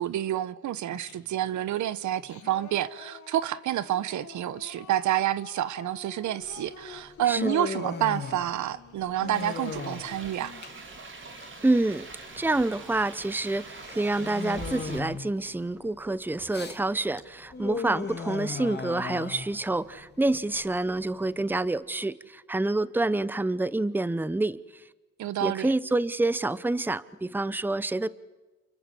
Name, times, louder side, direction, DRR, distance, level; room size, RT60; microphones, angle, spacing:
voice 1, 0.0-10.5 25.2-25.7, right 12 dB, 75° right, 1.0 m, -29 dB
Singing, 0.9-1.5 2.0-10.3, left 7 dB, 70° left, 3.6 m, -48 dB
Human voice, 6.4-21.6, left 5 dB, 35° left, 2.9 m, -38 dB
sound 1, 9.3-15.0, right 3 dB, 40° right, 4.0 m, -44 dB
voice 2, 11.6-12.1 12.4-24.8 25.4-28.1, right 2 dB, 5° right, 0.8 m, -27 dB
29.0 x 24.0 x 7.7 m
cardioid pair, 90°, 30 cm